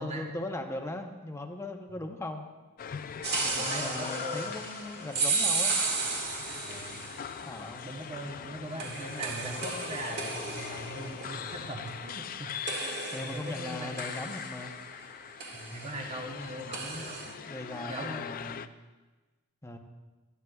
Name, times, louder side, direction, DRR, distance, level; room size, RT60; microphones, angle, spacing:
voice 1, 0.0-2.5 3.4-5.7 7.5-7.8 13.1-14.7 16.5-16.8 17.3-18.7 19.6-19.8, left 1 dB, 10° left, 4 dB, 0.8 m, -39 dB
sound 1, 2.8-18.7, left 8 dB, 40° left, 0.4 m, -41 dB
sound 2, 3.2-7.5 8.8-12.3 12.7-15.0 15.4-15.9 16.7-17.3, right 4 dB, 50° right, 1.8 m, -34 dB
voice 2, 3.5-4.5 5.1-5.2 6.6-7.1 7.8-12.5 12.8-14.0 15.5-17.3 17.9-18.3, right 1 dB, 30° right, 1 dB, 0.9 m, -40 dB
17.5 x 12.5 x 2.3 m, 1.2 s
head